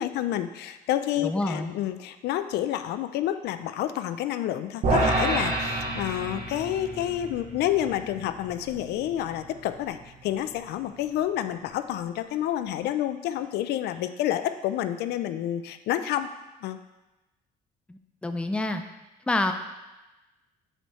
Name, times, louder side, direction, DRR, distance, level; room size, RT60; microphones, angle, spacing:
voice 1, 0.0-16.3 16.6-16.8, left 12 dB, 75° left, 10 dB, 0.4 m, -29 dB
voice 2, 1.2-1.7 17.9-18.8 19.3-19.5, left 2 dB, 5° left, 7 dB, 0.4 m, -27 dB
sound 1, 4.8-11.2, right 2 dB, 50° right, 1.9 m, -30 dB
7.9 x 4.3 x 3.1 m, 1.0 s
cardioid pair, 110°, 17 cm